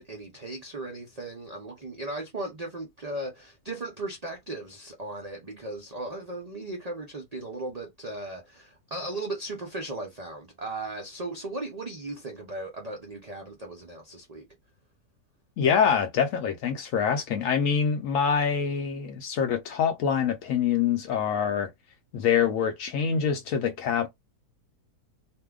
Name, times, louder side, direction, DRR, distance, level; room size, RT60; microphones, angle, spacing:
voice 1, 0.0-14.5, right 2 dB, 75° right, 0.3 m, -37 dB
voice 2, 15.6-21.7 22.1-24.1, left 7 dB, 70° left, 0.9 m, -25 dB
2.7 x 2.1 x 3.5 m
omnidirectional pair, 1.6 m